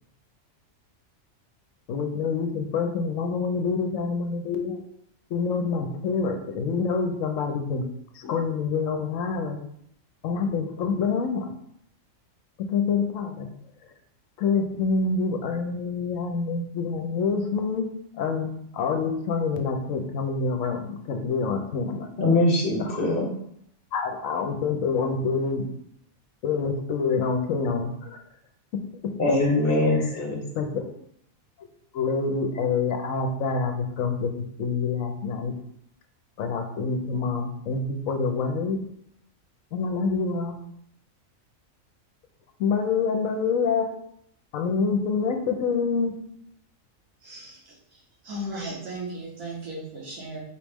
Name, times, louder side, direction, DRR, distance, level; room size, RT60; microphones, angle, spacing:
voice 1, 1.9-4.8 5.3-7.8 8.1-9.6 10.2-11.5 12.6-13.5 14.4-17.9 18.2-22.1 22.8-23.0 23.9-25.7 26.4-28.2 29.9-30.1 30.5-30.9 31.9-34.3 34.6-35.5 36.4-38.8 39.7-40.6 42.6-43.9 44.5-46.1, left 5 dB, 75° left, 5 dB, 1.0 m, -26 dB
voice 2, 22.2-23.3 29.2-30.4, left 2 dB, 45° left, -1 dB, 1.0 m, -22 dB
voice 3, 47.2-50.4, right 1 dB, 85° right, -5 dB, 1.8 m, -36 dB
4.7 x 3.0 x 3.5 m, 0.71 s
omnidirectional pair, 1.4 m